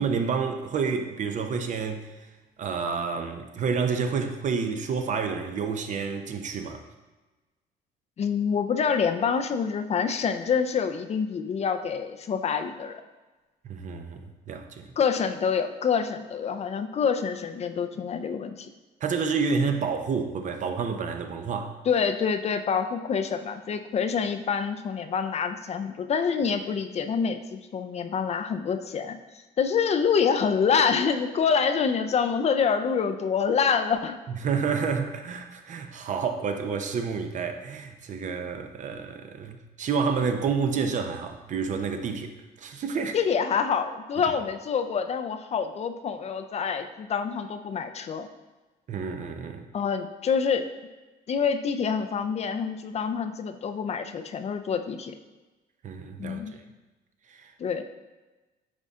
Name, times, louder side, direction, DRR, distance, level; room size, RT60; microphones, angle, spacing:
voice 1, 0.0-2.0 2.6-6.8 13.6-14.8 19.0-21.8 34.4-43.1 48.9-49.6 55.8-56.6 57.3-57.5, right 5 dB, 45° right, 6 dB, 0.7 m, -29 dB
voice 2, 8.2-13.0 15.0-18.7 21.9-29.2 29.6-34.2 43.1-48.3 49.7-50.7 51.3-55.1 56.2-56.5 57.6-57.8, left 6 dB, 40° left, 8 dB, 0.5 m, -26 dB
9.7 x 4.0 x 3.6 m, 1.2 s
cardioid pair, 110°, 17 cm